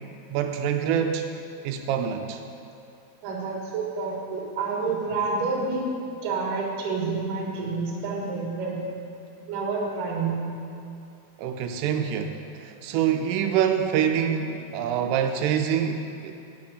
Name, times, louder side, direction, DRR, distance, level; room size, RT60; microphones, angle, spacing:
voice 1, 0.3-1.3 1.6-2.4 11.4-16.4, right 8 dB, 90° right, 5 dB, 2.7 m, -26 dB
voice 2, 3.2-5.9 6.2-8.9 9.5-10.4, right 4 dB, 65° right, -2 dB, 2.9 m, -28 dB
9.3 x 5.8 x 7.6 m, 2.6 s
omnidirectional pair, 4.7 m